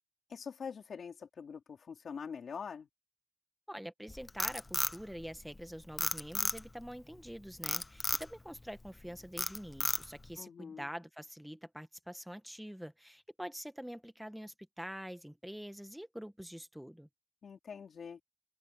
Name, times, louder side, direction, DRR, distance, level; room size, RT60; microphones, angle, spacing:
voice 1, 0.3-2.9 10.4-10.9 17.4-18.2, left 6 dB, 80° left, 4.1 m, -44 dB
voice 2, 3.7-17.1, equal, 5° right, 1.3 m, -46 dB
Frog, 4.1-5.6 6.0-6.9 7.6-8.3 8.8-9.0 9.4-10.3, left 2 dB, 25° left, 0.7 m, -33 dB
open air
wide cardioid pair, 105°, 0 cm